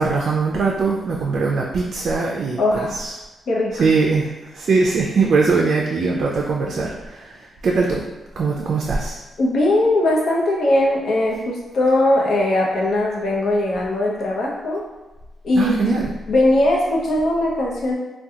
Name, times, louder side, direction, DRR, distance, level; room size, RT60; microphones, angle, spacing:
voice 1, 0.0-3.1 3.8-8.0 8.4-9.2 15.6-16.1, right 4 dB, 60° right, -1 dB, 0.4 m, -21 dB
voice 2, 2.6-2.9 3.5-3.7 9.4-14.8 15.4-15.8 16.3-17.9, left 1 dB, 65° left, -2 dB, 0.7 m, -19 dB
2.8 x 2.2 x 3.6 m, 1.1 s
cardioid pair, 120°, 0 cm